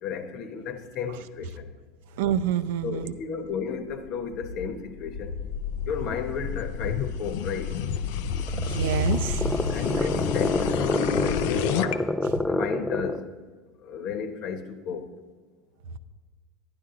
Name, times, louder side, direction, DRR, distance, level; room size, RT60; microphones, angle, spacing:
voice 1, 0.0-1.7 2.8-5.3 5.8-7.7 9.7-12.1 12.5-13.3 13.8-15.1, left 6 dB, 50° left, 8 dB, 1.0 m, -33 dB
voice 2, 2.2-3.1 8.5-9.8, right 7 dB, 75° right, 11 dB, 0.6 m, -27 dB
sound 1, 3.9-11.9, left 7 dB, 75° left, 0.5 m, -30 dB
sound 2, 8.3-13.3, left 1 dB, 5° left, 0.3 m, -28 dB
10.5 x 10.5 x 3.8 m, 1.5 s
supercardioid pair, 120°, 0 cm